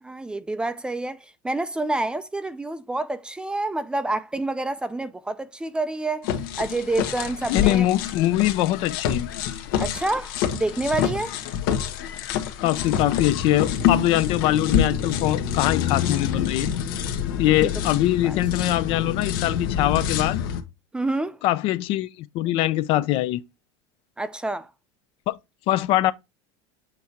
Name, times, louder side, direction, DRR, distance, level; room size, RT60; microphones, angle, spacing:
voice 1, 0.0-6.3 6.6-7.9 9.8-11.3 17.6-17.7 18.2-18.4 20.9-21.4 24.2-24.7, right 2 dB, 10° right, 0.4 m, -28 dB
sound 1, 6.2-20.6, left 9 dB, 85° left, 1.4 m, -27 dB
voice 2, 7.5-9.3 12.6-16.7 17.4-20.4 21.4-23.4 25.3-25.4 25.7-26.1, left 15 dB, 55° left, 0.6 m, -23 dB
7.8 x 2.8 x 4.5 m
cardioid pair, 150°, 11 cm